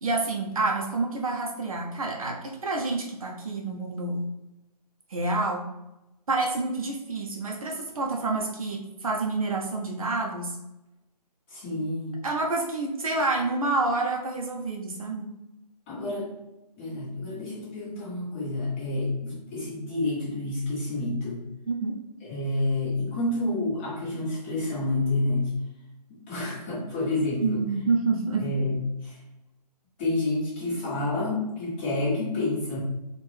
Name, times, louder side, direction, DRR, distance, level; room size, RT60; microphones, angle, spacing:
voice 1, 0.0-4.2 5.1-5.7 6.3-10.5 12.2-15.3 21.7-22.0 27.4-28.5, right 3 dB, 55° right, 0 dB, 0.8 m, -28 dB
voice 2, 11.5-12.2 15.9-16.4 16.8-21.4 22.2-25.5 26.1-27.6 28.4-29.2 30.0-32.8, left 2 dB, 15° left, -9 dB, 1.3 m, -29 dB
4.4 x 2.5 x 3.3 m, 0.96 s
hypercardioid pair, 165°, 21 cm